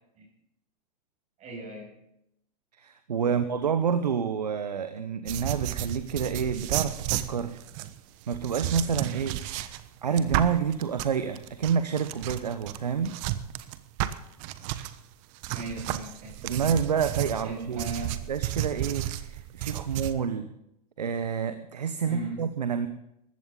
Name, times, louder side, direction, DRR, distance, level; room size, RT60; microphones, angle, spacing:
voice 1, 1.4-1.9 3.3-3.4 15.5-16.4 17.4-18.2 22.0-22.4, right 2 dB, 35° right, 0 dB, 6.7 m, -38 dB
voice 2, 2.8-7.6 8.3-9.7 10.0-13.2 16.4-17.8 18.3-20.5 21.0-22.9, right 7 dB, 85° right, 10 dB, 1.0 m, -28 dB
sound 1, 5.3-14.9 15.4-20.1, right 14 dB, 55° right, 1.1 m, -33 dB
19.5 x 15.0 x 3.9 m, 0.81 s
hypercardioid pair, 100°, 20 cm